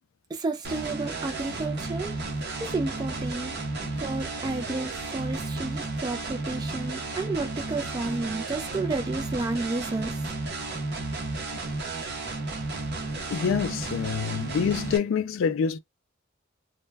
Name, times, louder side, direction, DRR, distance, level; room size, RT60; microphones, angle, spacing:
voice 1, 0.3-2.2 2.6-3.6 4.0-10.3, right 3 dB, 20° right, 0.3 m, -31 dB
sound 1, 0.6-15.0, right 2 dB, 55° right, 0.7 m, -33 dB
voice 2, 13.3-15.8, left 6 dB, 70° left, 0.3 m, -26 dB
2.2 x 2.1 x 3.2 m
head